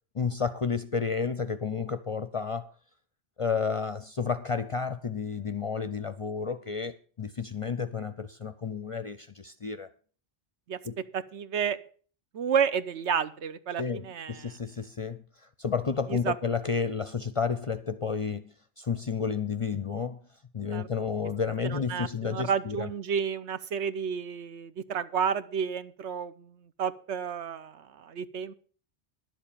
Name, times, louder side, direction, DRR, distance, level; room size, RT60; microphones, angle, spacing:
voice 1, 0.1-2.7 3.4-9.9 10.8-11.0 13.8-20.2 20.5-22.9, left 5 dB, 40° left, 0.5 m, -31 dB
voice 2, 11.1-11.8 12.3-14.5 16.1-16.3 20.7-20.9 21.7-28.5, right 7 dB, 80° right, 1.1 m, -31 dB
11.0 x 7.4 x 6.9 m
omnidirectional pair, 1.2 m